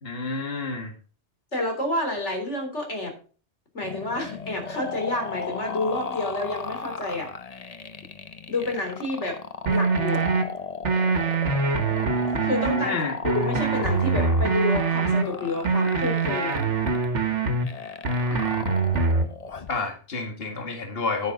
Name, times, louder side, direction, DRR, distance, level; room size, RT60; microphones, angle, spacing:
voice 1, 0.0-0.9 12.8-13.2 18.3-18.7 19.7-21.3, left 3 dB, 55° left, 4 dB, 2.1 m, -30 dB
voice 2, 1.5-3.1 3.7-7.3 8.5-9.4 9.7-10.2 12.4-13.0 13.2-16.6, left 2 dB, 85° left, 3 dB, 4.1 m, -29 dB
sound 1, 3.8-19.8, left 5 dB, 35° left, 0.9 m, -36 dB
sound 2, 9.7-10.4 10.8-12.9 13.2-15.2 15.6-17.7 18.0-19.3, right 4 dB, 85° right, 1.8 m, -24 dB
10.5 x 9.8 x 3.9 m, 0.38 s
omnidirectional pair, 1.2 m